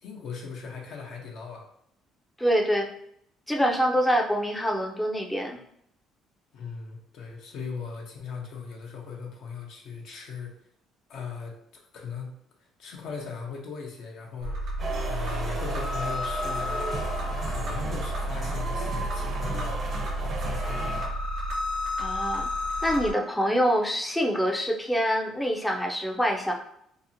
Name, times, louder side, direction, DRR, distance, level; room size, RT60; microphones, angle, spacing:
voice 1, 0.0-1.7 6.5-10.5 11.1-12.4 12.8-16.9 17.4-19.8 20.2-21.1, left 5 dB, 70° left, 0 dB, 0.7 m, -39 dB
voice 2, 2.4-2.9 3.5-5.6 22.0-22.5 22.8-26.5, equal, 10° left, 1 dB, 0.4 m, -25 dB
sound 1, 14.4-23.1, equal, 75° right, 1.1 m, -31 dB
sound 2, 14.8-21.2, right 2 dB, 45° right, 0.7 m, -35 dB
2.8 x 2.0 x 2.6 m, 0.73 s
supercardioid pair, 80°, 0 cm